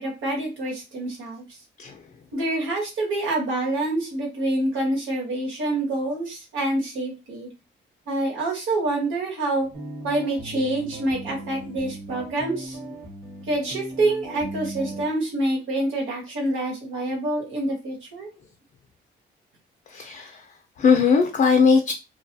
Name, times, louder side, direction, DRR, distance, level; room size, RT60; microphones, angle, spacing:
voice 1, 0.0-1.4 2.3-7.5 8.1-9.7 10.0-12.8 13.5-18.3, right 2 dB, 85° right, 1.3 m, -26 dB
voice 2, 1.8-2.1 19.9-21.9, left 5 dB, 45° left, 0.5 m, -20 dB
sound 1, 9.7-15.1, right 1 dB, 40° right, 1.1 m, -37 dB
2.3 x 2.3 x 2.6 m
cardioid pair, 90°, 20 cm